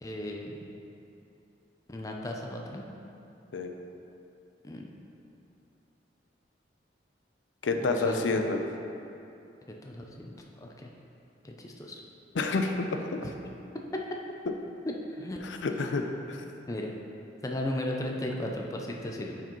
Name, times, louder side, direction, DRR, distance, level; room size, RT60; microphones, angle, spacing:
voice 1, 0.0-0.6 1.9-2.8 4.6-4.8 7.8-8.3 9.8-10.3 10.6-10.9 11.4-12.0 13.9-14.0 15.2-15.4 15.7-15.9 16.7-16.9 17.4-19.4, left 1 dB, 20° left, 0 dB, 0.5 m, -35 dB
voice 2, 7.6-8.6 12.3-12.9 13.1-13.2 15.4-16.4, left 3 dB, 90° left, 5 dB, 0.5 m, -29 dB
8.8 x 4.8 x 3.0 m, 2.8 s
head